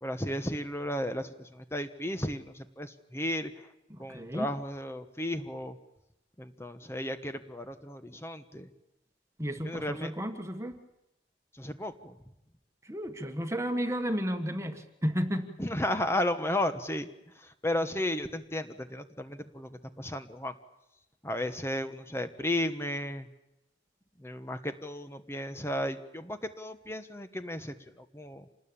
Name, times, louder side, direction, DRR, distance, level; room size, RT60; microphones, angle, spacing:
voice 1, 0.0-3.7 4.0-5.8 6.4-8.7 9.6-10.1 11.5-12.1 15.6-17.1 17.3-19.7 20.0-20.5 21.2-23.3 24.2-28.5, left 1 dB, 15° left, 9 dB, 1.3 m, -34 dB
voice 2, 3.9-4.5 9.4-10.7 12.8-15.5, equal, 15° right, 7 dB, 1.6 m, -32 dB
27.5 x 19.5 x 8.9 m, 0.91 s
head